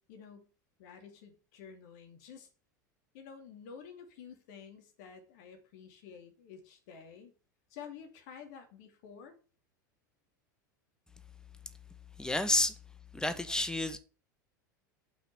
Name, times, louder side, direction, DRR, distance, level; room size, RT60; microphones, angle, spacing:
voice 1, 0.1-0.5 0.8-2.5 3.1-7.3 7.7-9.4, left 7 dB, 60° left, 2.8 m, -50 dB
voice 2, 12.2-12.7 13.1-14.0, left 2 dB, 5° left, 1.7 m, -30 dB
8.1 x 6.0 x 7.7 m
hypercardioid pair, 85°, 10 cm